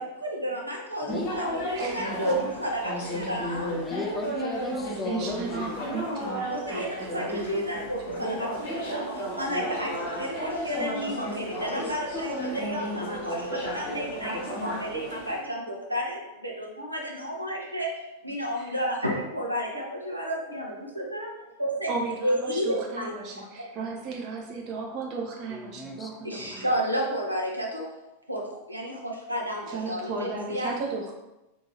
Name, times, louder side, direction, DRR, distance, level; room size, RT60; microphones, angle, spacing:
voice 1, 0.0-3.8 6.5-9.1 9.4-17.9 18.2-21.3 21.6-21.9 22.2-23.1 26.2-27.9 28.3-30.7, equal, 85° right, -1 dB, 0.7 m, -31 dB
sound 1, 1.1-15.4, equal, 50° left, 1.1 m, -33 dB
voice 2, 1.7-2.5 3.0-3.3 5.0-8.3 18.5-18.8 21.9-26.7 29.7-31.1, right 4 dB, 40° right, 0 dB, 0.8 m, -36 dB
voice 3, 3.8-6.1 10.0-10.2 25.5-26.1 26.4-26.7, left 3 dB, 10° left, 2 dB, 0.4 m, -37 dB
2.7 x 2.7 x 4.3 m, 0.98 s
figure-of-eight pair, 90°, 0 cm